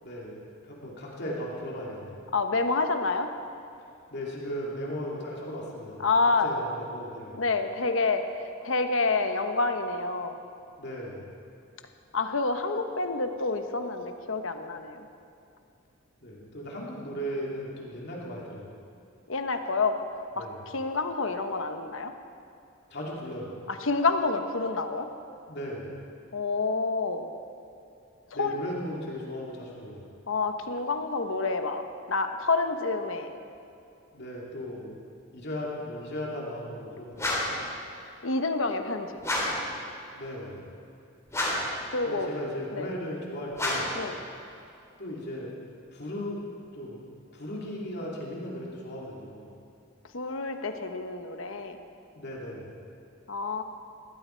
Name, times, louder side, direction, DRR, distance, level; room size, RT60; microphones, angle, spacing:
voice 1, 0.0-2.3 4.1-7.4 10.8-11.3 16.2-18.7 20.4-20.6 22.9-23.5 25.5-25.9 28.3-30.1 34.1-35.0 35.3-37.4 40.1-40.8 42.0-44.0 45.0-45.5 45.9-46.4 46.7-47.0 47.3-49.5 52.1-52.7, equal, 55° left, -3 dB, 2.8 m, -37 dB
voice 2, 2.3-3.3 6.0-6.5 7.3-8.2 8.6-10.4 12.1-15.0 19.3-20.0 20.4-20.5 20.7-22.1 23.8-25.1 26.3-27.3 28.4-28.6 30.3-33.3 38.2-39.1 41.9-42.3 42.8-42.9 43.9-44.2 50.1-51.8 53.3-53.6, left 3 dB, 70° left, 7 dB, 1.1 m, -28 dB
sound 1, 37.2-37.6 39.2-39.7 41.3-41.8 43.5-44.0, left 1 dB, 15° left, 3.5 m, -29 dB
20.5 x 15.5 x 4.6 m, 2.6 s
head